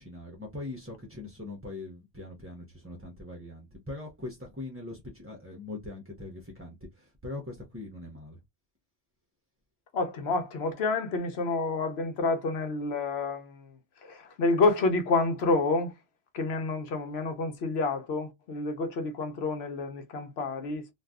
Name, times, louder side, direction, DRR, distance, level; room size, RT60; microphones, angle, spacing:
voice 1, 0.0-8.4, left 2 dB, 15° right, 0.4 m, -41 dB
voice 2, 9.9-13.7 14.0-15.9 16.3-20.9, left 3 dB, 65° left, 0.9 m, -29 dB
2.6 x 2.3 x 3.4 m
omnidirectional pair, 1.2 m